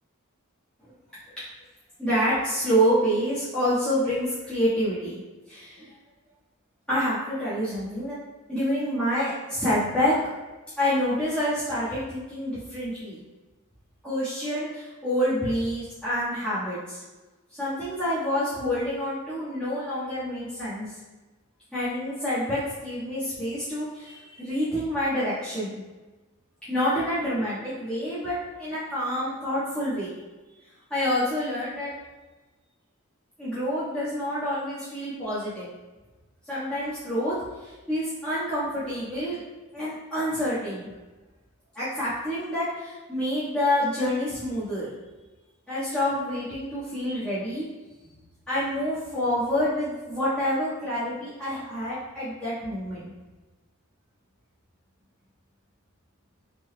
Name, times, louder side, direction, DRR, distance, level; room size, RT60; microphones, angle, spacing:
voice 1, 2.0-5.2 5.5-5.9 6.9-8.2 8.5-10.2 10.8-13.2 14.0-17.0 17.6-21.0 21.7-25.8 26.7-30.2 30.9-31.9 33.4-35.7 36.4-39.4 39.7-40.9 41.7-44.9 45.7-47.6 48.5-53.1, equal, 5° left, -15 dB, 1.4 m, -27 dB
5.0 x 4.4 x 2.2 m, 1.2 s
head